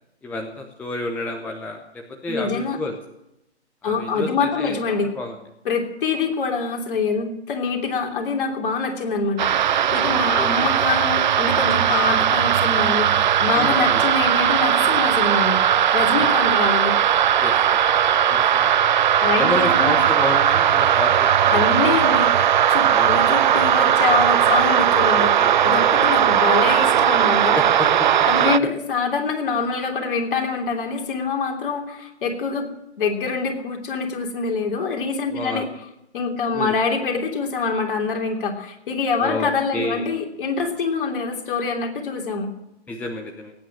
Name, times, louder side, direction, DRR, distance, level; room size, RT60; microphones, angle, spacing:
voice 1, 0.2-2.9 3.8-5.4 10.0-10.7 13.5-14.0 16.2-16.3 17.4-17.8 18.3-18.7 19.3-21.7 22.9-23.2 25.1-25.9 27.5-27.9 35.3-35.7 36.5-36.8 39.2-40.1 42.9-43.5, left 2 dB, 5° left, 2 dB, 0.8 m, -30 dB
voice 2, 2.3-2.8 3.8-5.1 5.6-15.6 15.9-16.9 19.2-20.0 21.5-25.3 25.6-27.6 28.3-32.7 33.0-35.7 36.1-42.5, left 4 dB, 50° left, 1 dB, 3.2 m, -25 dB
sound 1, 9.4-28.6, right 10 dB, 45° right, 0.5 m, -18 dB
18.5 x 9.3 x 7.5 m, 0.88 s
figure-of-eight pair, 135°, 34 cm